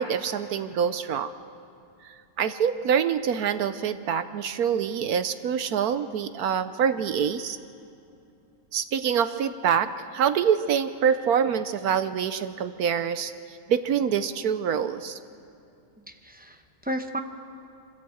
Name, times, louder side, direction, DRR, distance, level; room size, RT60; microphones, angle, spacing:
voice 1, 0.0-1.3 2.0-7.6 8.7-15.2, right 7 dB, 65° right, 12 dB, 1.1 m, -26 dB
voice 2, 16.1-17.2, equal, 10° right, 5 dB, 0.6 m, -33 dB
24.5 x 15.5 x 7.9 m, 2.6 s
omnidirectional pair, 1.8 m